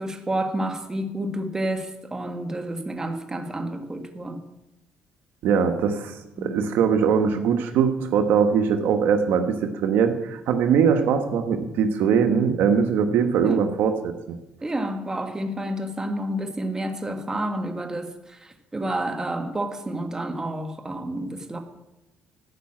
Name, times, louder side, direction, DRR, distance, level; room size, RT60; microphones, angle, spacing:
voice 1, 0.0-4.4 6.4-6.6 13.4-13.6 14.6-21.6, right 1 dB, 15° right, 5 dB, 1.6 m, -30 dB
voice 2, 5.4-14.4, right 7 dB, 80° right, 7 dB, 1.1 m, -21 dB
13.5 x 5.8 x 8.7 m, 0.94 s
cardioid pair, 95°, 3 cm